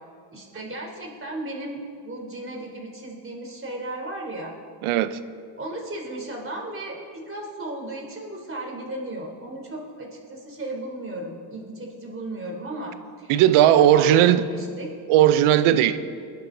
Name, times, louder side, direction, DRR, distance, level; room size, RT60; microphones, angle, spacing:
voice 1, 0.3-4.5 5.6-13.3 13.8-14.9, right 1 dB, 25° right, 3.8 m, -35 dB
voice 2, 4.8-5.2 13.3-14.5 15.1-16.0, right 11 dB, 80° right, 0.9 m, -17 dB
20.5 x 11.0 x 4.0 m
supercardioid pair, 75°, 49 cm